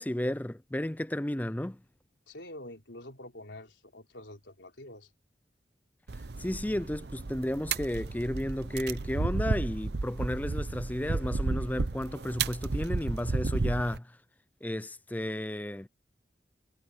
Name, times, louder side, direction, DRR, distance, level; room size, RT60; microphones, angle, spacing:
voice 1, 0.0-1.8 6.4-14.1 14.6-15.9, left 1 dB, 10° left, 0.5 m, -33 dB
voice 2, 2.3-5.1, left 1 dB, 90° left, 4.1 m, -46 dB
sound 1, 6.1-14.0, right 3 dB, 65° right, 0.8 m, -33 dB
head